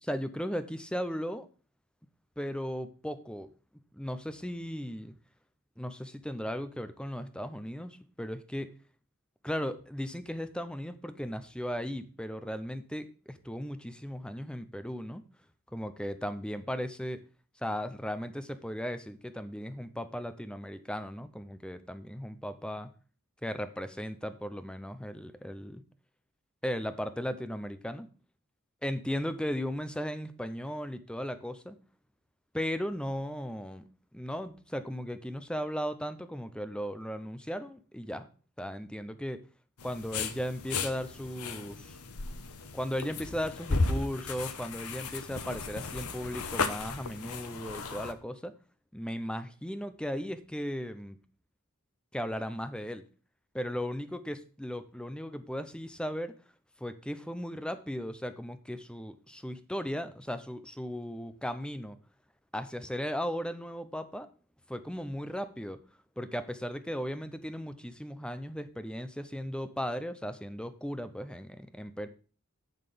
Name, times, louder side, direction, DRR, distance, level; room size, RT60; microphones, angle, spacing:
voice 1, 0.1-1.5 2.4-3.5 3.9-5.1 5.8-8.7 9.4-15.2 15.7-17.2 17.6-22.9 23.4-25.8 26.6-28.1 28.8-31.8 32.5-38.3 38.6-39.4 39.8-42.0 42.7-48.5 48.9-51.2 52.1-53.0 53.5-56.3 56.8-62.0 62.5-64.3 64.7-65.8 66.2-72.1, equal, 5° left, 11 dB, 0.6 m, -36 dB
sound 1, 39.8-48.1, left 3 dB, 85° left, 1.0 m, -35 dB
11.0 x 4.1 x 6.9 m, 0.38 s
head